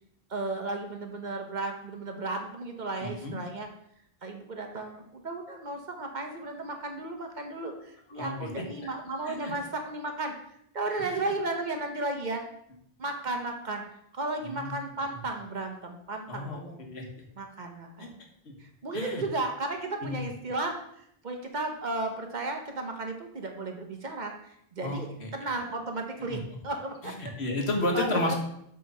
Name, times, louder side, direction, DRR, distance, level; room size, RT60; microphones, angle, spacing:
voice 1, 0.3-3.7 4.2-10.3 10.7-12.4 13.0-13.8 14.1-16.8 17.4-18.2 18.6-25.1 25.3-27.1 27.9-28.3, right 2 dB, 45° right, 3 dB, 1.1 m, -34 dB
voice 2, 3.0-3.4 8.2-8.5 9.2-9.5 11.0-11.2 14.4-14.7 15.1-15.2 16.3-16.6 16.9-17.0 18.0-18.1 18.9-19.2 20.0-20.2 24.8-25.3 26.3-26.4 27.0-28.3, left 2 dB, 85° left, 1 dB, 1.6 m, -32 dB
7.6 x 3.5 x 5.5 m, 0.72 s
omnidirectional pair, 1.1 m